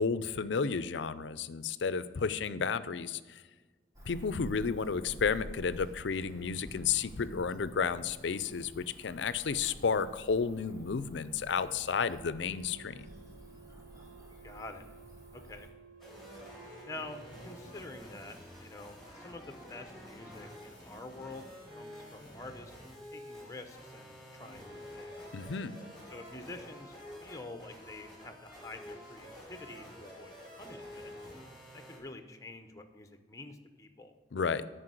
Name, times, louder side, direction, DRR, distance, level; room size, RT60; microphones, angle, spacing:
voice 1, 0.0-3.4 4.1-13.1 25.3-25.8 34.3-34.7, left 5 dB, 70° left, 15 dB, 0.5 m, -32 dB
Cricket / Motor vehicle (road), 3.9-15.7, equal, 20° right, 1.5 m, -50 dB
sound 1, 12.0-18.0, right 6 dB, 55° right, 2.0 m, -56 dB
voice 2, 14.4-14.9 15.3-15.7 16.8-22.8 23.1-25.4 26.1-31.1 31.7-34.1, left 2 dB, 15° left, 7 dB, 0.8 m, -47 dB
sound 2, 16.0-32.0, equal, ahead, 3.1 m, -49 dB
9.7 x 5.3 x 7.8 m, 1.3 s
head